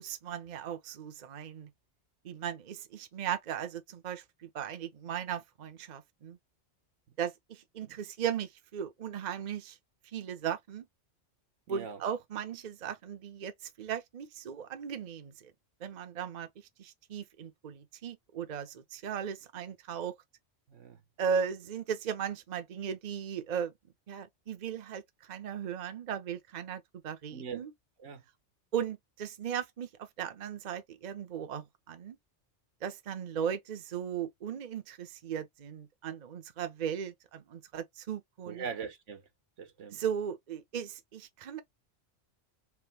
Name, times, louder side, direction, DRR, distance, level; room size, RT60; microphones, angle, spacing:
voice 1, 0.0-1.7 2.2-6.4 7.2-9.8 10.1-10.9 11.7-15.5 15.8-16.5 16.8-20.1 21.2-23.7 24.1-27.7 28.7-32.2 32.8-38.7 39.9-41.6, right 8 dB, 45° right, 0.7 m, -37 dB
voice 2, 11.7-12.0 20.7-21.0 27.3-27.6 28.0-28.2 38.5-39.2 39.6-40.0, right 6 dB, 85° right, 1.3 m, -41 dB
3.5 x 3.1 x 3.2 m
omnidirectional pair, 1.2 m